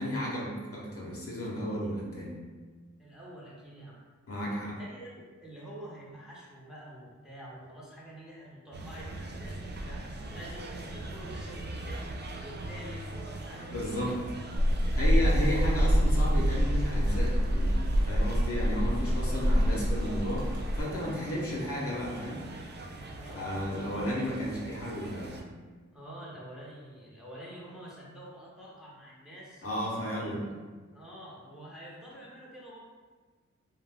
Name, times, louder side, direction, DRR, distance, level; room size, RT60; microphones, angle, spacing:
voice 1, 0.0-2.4 4.3-4.8 13.7-14.2 14.9-20.5 20.7-22.5 23.3-25.4 29.6-30.5, equal, 50° left, -4 dB, 0.7 m, -33 dB
voice 2, 3.0-4.0 4.6-13.7 14.0-14.2 21.2-21.6 23.2-24.2 25.9-29.7 30.2-30.3 30.9-32.8, right 1 dB, ahead, -6 dB, 0.7 m, -47 dB
sound 1, 8.7-25.4, right 2 dB, 40° right, 0.4 m, -42 dB
sound 2, 14.5-20.8, equal, 75° right, 0.7 m, -26 dB
2.4 x 2.2 x 3.4 m, 1.4 s
cardioid pair, 60°, 29 cm